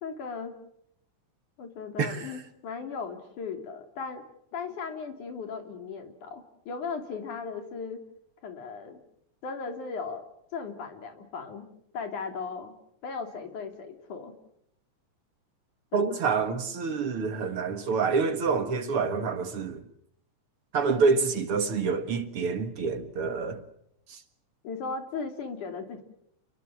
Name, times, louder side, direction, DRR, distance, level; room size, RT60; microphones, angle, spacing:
voice 1, 0.0-0.5 1.6-4.2 4.5-8.0 8.4-9.0 9.4-10.2 10.5-11.7 11.9-12.7 13.0-14.3 15.9-16.0 16.3-16.6 24.6-26.0, left 5 dB, 90° left, 4.5 m, -37 dB
voice 2, 2.0-2.3 15.9-19.8 20.7-23.6 24.1-24.2, right 5 dB, 50° right, 2.4 m, -27 dB
29.0 x 21.5 x 7.6 m
omnidirectional pair, 3.4 m